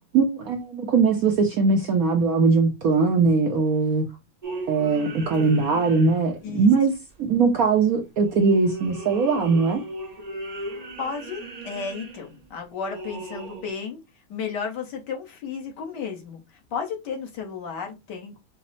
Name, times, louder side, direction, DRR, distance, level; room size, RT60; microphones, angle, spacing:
voice 1, 0.1-4.0 4.7-6.9 7.2-9.8, right 4 dB, 65° right, 0.9 m, -20 dB
sound 1, 4.4-6.5 6.9-7.6 8.0-13.7, right 2 dB, 40° right, 0.5 m, -38 dB
voice 2, 11.0-14.0 14.3-18.4, left 5 dB, 65° left, 1.6 m, -33 dB
5.1 x 2.1 x 4.0 m
omnidirectional pair, 2.1 m